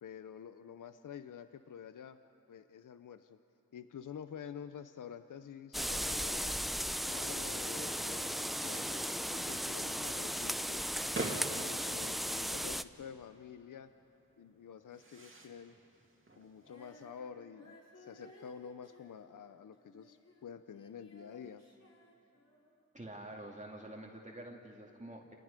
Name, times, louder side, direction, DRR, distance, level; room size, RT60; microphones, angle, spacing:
voice 1, 0.0-2.2 2.5-3.4 3.7-6.6 7.0-10.8 11.5-13.9 14.4-15.8 16.4-21.6, left 7 dB, 75° left, 11 dB, 0.6 m, -49 dB
sound 1, 5.7-12.8, equal, ahead, 0.5 m, -36 dB
sound 2, 8.4-17.0, right 2 dB, 40° right, 2.4 m, -49 dB
Female singing, 16.6-20.5 20.7-22.8, left 1 dB, 50° left, 3.8 m, -60 dB
voice 2, 22.9-25.3, right 1 dB, 20° right, 0 dB, 2.1 m, -47 dB
29.0 x 19.0 x 5.2 m, 2.7 s
cardioid pair, 55°, 32 cm